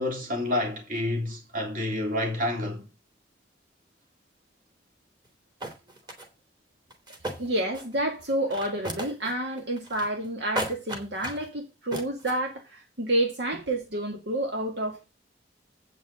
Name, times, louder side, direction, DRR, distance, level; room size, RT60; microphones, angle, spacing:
voice 1, 0.0-2.8, left 1 dB, 50° right, 3.4 m, -29 dB
sound 1, 5.3-5.4 5.6-6.3 6.9-8.0 8.3-9.3 9.6-10.3 10.6-11.5 11.9-12.4, right 1 dB, 25° right, 2.8 m, -34 dB
voice 2, 7.4-15.1, right 1 dB, 70° right, 1.9 m, -29 dB
8.5 x 5.4 x 7.5 m
head